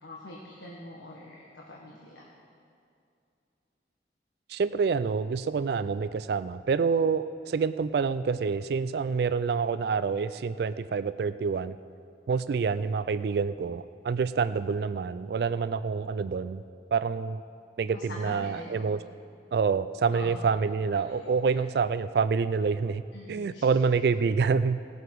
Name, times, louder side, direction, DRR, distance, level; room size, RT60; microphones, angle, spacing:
voice 1, 0.0-2.3 17.9-18.9 20.1-20.5 20.9-21.6 23.1-23.7, left 1 dB, 85° left, -3 dB, 1.4 m, -44 dB
voice 2, 4.5-11.8 12.3-16.6 16.9-17.4 17.8-19.0 19.5-23.0 23.3-24.8, right 5 dB, 60° right, 14 dB, 0.3 m, -27 dB
18.5 x 8.0 x 4.7 m, 2.5 s
head